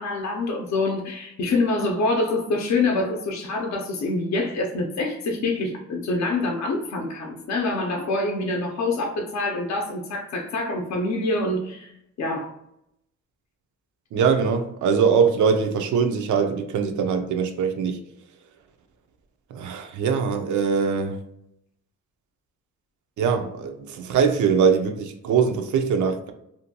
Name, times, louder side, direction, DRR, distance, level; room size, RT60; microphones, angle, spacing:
voice 1, 0.0-11.9 12.2-12.5, left 2 dB, 70° left, 0.5 m, -26 dB
voice 2, 14.1-18.0 19.5-21.2 23.2-26.3, right 6 dB, 90° right, 0.5 m, -22 dB
2.6 x 2.2 x 2.7 m
wide cardioid pair, 155°, 29 cm